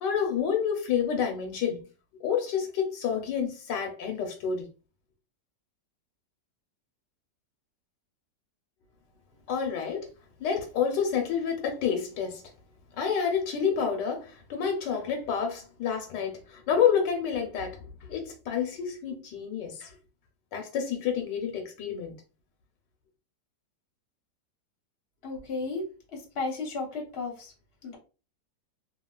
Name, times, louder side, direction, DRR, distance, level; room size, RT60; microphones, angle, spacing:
voice 1, 0.0-1.8 2.2-4.7 9.5-10.1 10.4-12.4 13.0-17.8 18.1-19.9 20.5-22.1, left 7 dB, 75° left, 1.2 m, -29 dB
voice 2, 25.2-25.9 26.3-27.5 27.8-28.0, left 3 dB, 40° left, 1.0 m, -33 dB
2.9 x 2.7 x 2.2 m
omnidirectional pair, 1.9 m